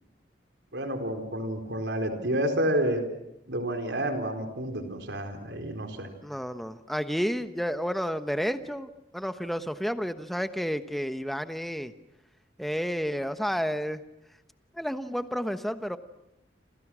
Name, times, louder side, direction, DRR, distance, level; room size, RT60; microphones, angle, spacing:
voice 1, 0.7-3.0 3.5-6.1, right 1 dB, 85° right, 5 dB, 4.2 m, -29 dB
voice 2, 6.2-11.9 12.6-14.0 14.7-16.0, equal, ahead, 9 dB, 1.1 m, -31 dB
29.5 x 27.0 x 6.3 m, 0.83 s
head